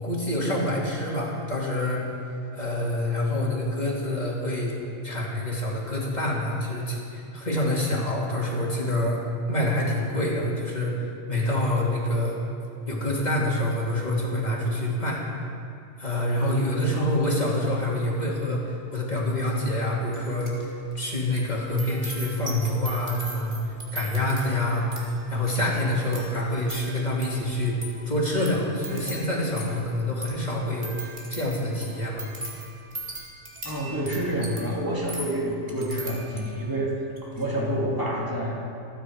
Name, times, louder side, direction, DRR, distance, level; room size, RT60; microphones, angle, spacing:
voice 1, 0.0-2.1 2.5-4.7 5.0-9.2 9.5-12.4 12.9-15.2 16.0-23.6 23.9-24.9 25.3-27.8 28.1-30.9 31.3-32.3, left 1 dB, 35° left, -4 dB, 2.8 m, -26 dB
sound 1, 20.1-20.7 20.9-36.7 37.1-37.4, right 1 dB, 40° right, 2.5 m, -40 dB
voice 2, 33.6-37.0 37.2-38.6, right 1 dB, 15° right, -4 dB, 2.6 m, -28 dB
26.5 x 9.7 x 4.7 m, 2.5 s
omnidirectional pair, 1.3 m